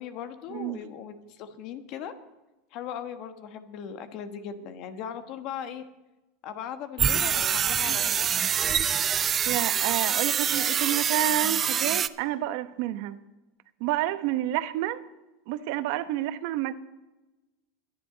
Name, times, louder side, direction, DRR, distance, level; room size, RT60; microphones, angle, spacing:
voice 1, 0.0-2.1 2.7-5.8 6.4-8.3, left 8 dB, 50° left, 1.4 m, -38 dB
sound 1, 7.0-12.1, right 8 dB, 25° right, 0.4 m, -25 dB
voice 2, 9.5-13.2 13.8-15.0 15.5-16.7, right 14 dB, 60° right, 0.9 m, -29 dB
22.0 x 10.5 x 3.9 m
supercardioid pair, 150°, 0 cm